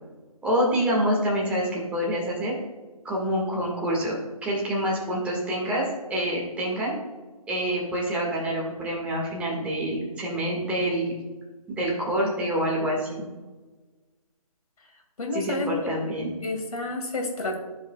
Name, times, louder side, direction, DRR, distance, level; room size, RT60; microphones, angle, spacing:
voice 1, 0.4-2.6 3.0-4.2 4.4-5.8 6.1-6.9 7.5-11.1 11.7-13.2 15.3-16.3, right 1 dB, 5° right, -4 dB, 1.6 m, -26 dB
voice 2, 15.2-15.9 16.4-17.6, left 3 dB, 70° left, 2 dB, 2.1 m, -30 dB
14.5 x 5.0 x 2.3 m, 1.3 s
figure-of-eight pair, 150°, 19 cm